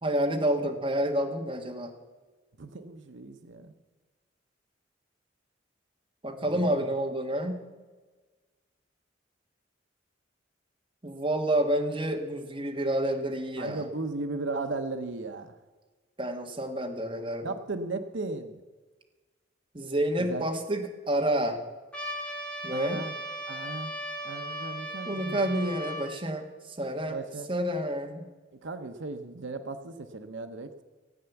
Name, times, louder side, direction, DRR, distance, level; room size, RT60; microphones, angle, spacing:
voice 1, 0.0-1.9 6.2-7.6 11.0-13.9 16.2-17.5 19.7-21.6 22.6-23.0 25.1-26.5 26.8-27.2 27.5-28.3, right 1 dB, 25° right, 3 dB, 1.4 m, -29 dB
voice 2, 2.6-3.7 6.4-6.9 13.6-15.5 17.4-18.6 20.2-20.4 22.7-23.1 23.5-23.9 24.2-25.7 27.1-27.5 28.6-30.7, right 3 dB, 75° right, 8 dB, 0.8 m, -36 dB
Trumpet, 21.9-26.1, right 1 dB, 5° left, 2.0 m, -37 dB
16.5 x 8.8 x 7.0 m, 1.3 s
head